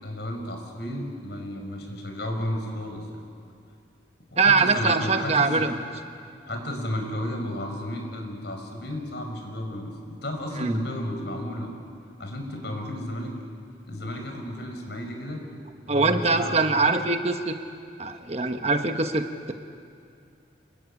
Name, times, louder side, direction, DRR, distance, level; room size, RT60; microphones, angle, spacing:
voice 1, 0.0-3.2 4.3-5.7 6.5-11.7 12.2-13.3 13.9-15.4 15.9-17.0, left 1 dB, 65° left, 3 dB, 5.4 m, -33 dB
voice 2, 4.4-5.7 10.6-10.8 15.9-17.6 18.0-19.5, right 3 dB, 35° right, 6 dB, 1.2 m, -23 dB
28.5 x 21.0 x 9.9 m, 2.4 s
head